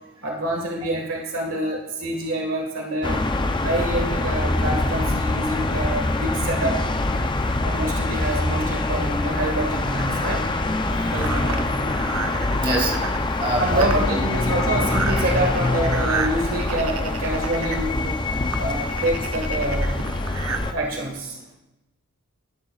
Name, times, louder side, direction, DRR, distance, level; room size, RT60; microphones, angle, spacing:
voice 1, 0.2-3.2 3.6-6.8 7.6-10.5 11.1-11.9 13.6-18.2 18.6-20.0 20.7-21.5, right 1 dB, 65° right, 0 dB, 1.8 m, -26 dB
sound 1, 3.0-20.7, left 2 dB, 20° left, 0.6 m, -24 dB
sound 2, 10.0-20.6, right 6 dB, 80° right, 0.9 m, -33 dB
voice 2, 12.6-12.9 13.4-13.8 14.1-14.2 18.8-18.9 20.4-20.7, right 2 dB, 25° right, -3 dB, 2.6 m, -26 dB
13.0 x 11.0 x 2.4 m, 0.97 s
head